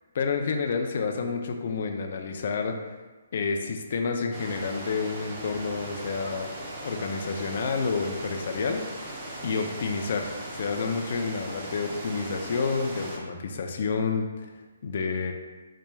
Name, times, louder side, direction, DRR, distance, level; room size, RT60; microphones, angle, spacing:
voice 1, 0.1-3.0 3.3-6.5 6.8-8.9 9.4-15.3, left 5 dB, 40° left, 4 dB, 0.3 m, -29 dB
sound 1, 4.3-13.2, right 1 dB, 20° right, 0.5 m, -39 dB
4.2 x 2.2 x 3.2 m, 1.2 s
hypercardioid pair, 175°, 0 cm